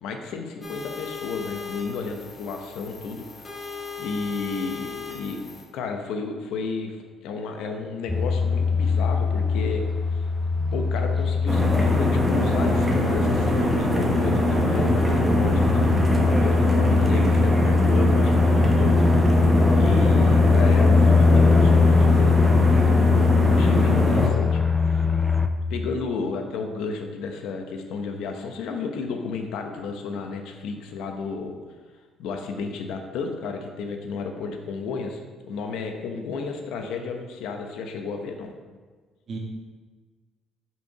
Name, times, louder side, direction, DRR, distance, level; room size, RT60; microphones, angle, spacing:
voice 1, 0.0-3.3 3.6-5.4 5.7-9.9 10.7-18.9 19.8-24.6 25.7-31.6 32.2-38.5, left 4 dB, 80° left, 4 dB, 0.8 m, -32 dB
sound 1, 0.6-5.6, left 5 dB, 30° left, 1.3 m, -38 dB
sound 2, 8.1-25.5, left 4 dB, 10° left, 0.4 m, -21 dB
voice 2, 10.5-11.0 39.3-39.4, right 4 dB, 45° right, -1 dB, 1.4 m, -37 dB
sound 3, 11.5-24.3, equal, 10° right, 1.0 m, -23 dB
5.6 x 4.6 x 4.8 m, 1.4 s
cardioid pair, 120°, 0 cm